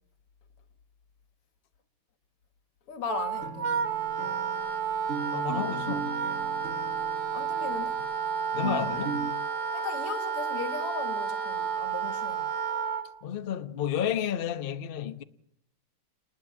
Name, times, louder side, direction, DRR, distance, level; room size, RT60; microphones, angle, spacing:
voice 1, 2.9-3.8 7.3-8.0 9.7-12.5, left 7 dB, 85° left, 2.5 m, -37 dB
Wind instrument woodwind instrument, 3.1-13.1, right 6 dB, 85° right, 2.9 m, -31 dB
sound 1, 3.4-9.3, right 5 dB, 45° right, 1.1 m, -39 dB
voice 2, 5.3-6.1 8.5-9.2 13.2-15.2, left 9 dB, 40° left, 0.8 m, -31 dB
29.0 x 20.5 x 7.5 m
omnidirectional pair, 2.4 m